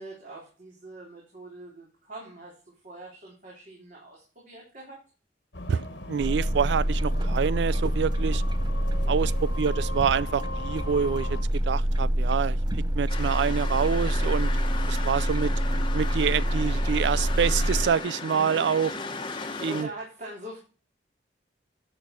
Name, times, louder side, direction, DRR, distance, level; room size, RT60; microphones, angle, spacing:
voice 1, 0.0-5.0 9.0-9.3 18.3-18.7 19.4-20.6, right 1 dB, 50° right, 3.4 m, -43 dB
sound 1, 5.5-11.4, left 2 dB, 85° left, 1.7 m, -39 dB
voice 2, 5.7-8.4 9.1-11.4 11.7-14.5 14.9-15.5 15.9-18.9 19.6-19.9, right 7 dB, 80° right, 0.4 m, -27 dB
sound 2, 6.2-17.9, equal, 25° right, 0.7 m, -26 dB
sound 3, 13.1-19.8, left 3 dB, 30° left, 1.2 m, -36 dB
11.0 x 6.2 x 4.4 m
head